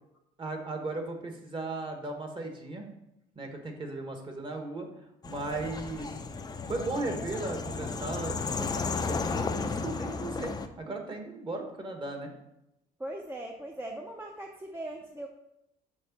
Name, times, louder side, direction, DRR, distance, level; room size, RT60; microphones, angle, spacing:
voice 1, 0.4-2.9 3.3-4.9 5.2-6.1 6.7-12.3, right 2 dB, 30° right, 3 dB, 1.4 m, -36 dB
sound 1, 5.2-10.7, left 4 dB, 25° left, 0.5 m, -34 dB
voice 2, 13.0-15.3, right 1 dB, 10° right, 1 dB, 0.6 m, -39 dB
6.4 x 3.7 x 6.0 m, 0.84 s
cardioid pair, 110°, 17 cm